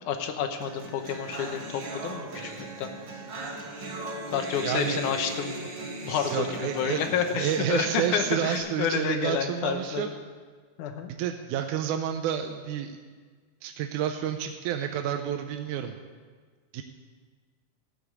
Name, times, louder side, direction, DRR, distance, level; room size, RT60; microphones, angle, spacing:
voice 1, 0.0-2.9 4.3-5.7 6.0-10.0 10.8-11.1, left 7 dB, 90° left, 6 dB, 2.4 m, -30 dB
sound 1, 0.6-8.6, right 2 dB, 45° right, 1.7 m, -38 dB
voice 2, 4.6-5.0 6.3-7.0 7.3-10.1 11.1-13.0 13.6-16.0 16.7-16.8, right 10 dB, 90° right, 5 dB, 2.1 m, -30 dB
13.5 x 6.5 x 8.3 m, 1.5 s
omnidirectional pair, 3.5 m